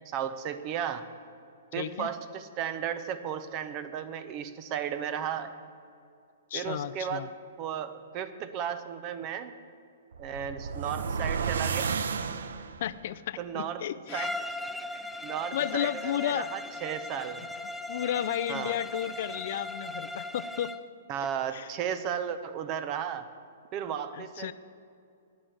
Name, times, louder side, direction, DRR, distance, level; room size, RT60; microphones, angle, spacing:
voice 1, 0.1-1.0 1.7-5.5 6.5-7.3 7.6-9.5 10.2-11.9 13.4-13.8 14.1-14.3 14.9-17.4 18.5-18.8 21.1-23.3 23.7-24.5, right 8 dB, 35° right, 11 dB, 0.8 m, -34 dB
voice 2, 1.8-2.1 6.5-7.3 12.8-14.3 15.5-16.5 17.9-20.7 21.5-21.7 24.1-24.5, left 11 dB, 60° left, 15 dB, 0.4 m, -33 dB
sound 1, 10.1-13.0, right 6 dB, 75° right, 0.6 m, -32 dB
Bowed string instrument, 14.1-20.9, left 2 dB, ahead, 0.5 m, -38 dB
9.6 x 9.6 x 8.1 m, 2.4 s
hypercardioid pair, 130°, 0 cm